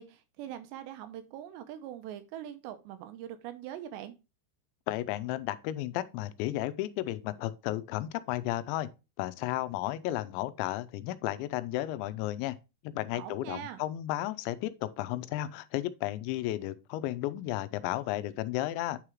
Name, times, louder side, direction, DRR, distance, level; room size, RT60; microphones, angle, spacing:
voice 1, 0.0-4.2 13.1-13.8, right 11 dB, 80° right, 2.9 m, -42 dB
voice 2, 4.9-8.9 9.2-12.6 12.8-19.0, left 15 dB, 90° left, 2.9 m, -33 dB
9.0 x 4.9 x 3.0 m
omnidirectional pair, 5.1 m